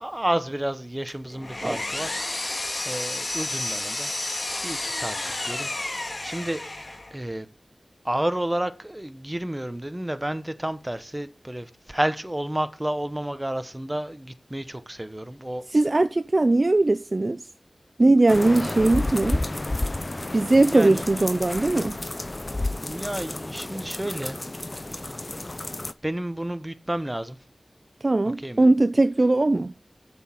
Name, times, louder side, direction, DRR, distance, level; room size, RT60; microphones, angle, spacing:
voice 1, 0.0-5.2 5.4-5.7 6.0-6.6 7.1-7.5 8.0-15.6 20.6-21.1 22.8-24.4 25.3-25.5 26.0-27.4 28.4-28.6, right 1 dB, 20° right, 0.9 m, -31 dB
Power tool, 1.1-7.2, left 2 dB, 55° left, 1.9 m, -31 dB
voice 2, 15.7-17.4 18.0-19.4 20.3-22.0 28.0-29.7, right 2 dB, 45° right, 0.4 m, -20 dB
sound 1, 18.3-25.9, left 2 dB, 35° left, 0.5 m, -31 dB
7.0 x 6.1 x 5.6 m
wide cardioid pair, 50°, 0 cm